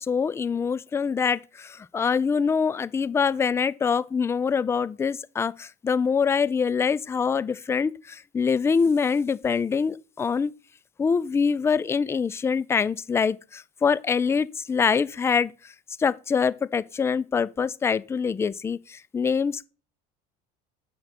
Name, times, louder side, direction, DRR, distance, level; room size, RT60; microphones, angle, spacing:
voice 1, 0.0-10.5 11.0-15.7 16.0-19.7, left 6 dB, 15° left, 0.3 m, -24 dB
8.8 x 6.6 x 4.2 m
cardioid pair, 135°, 21 cm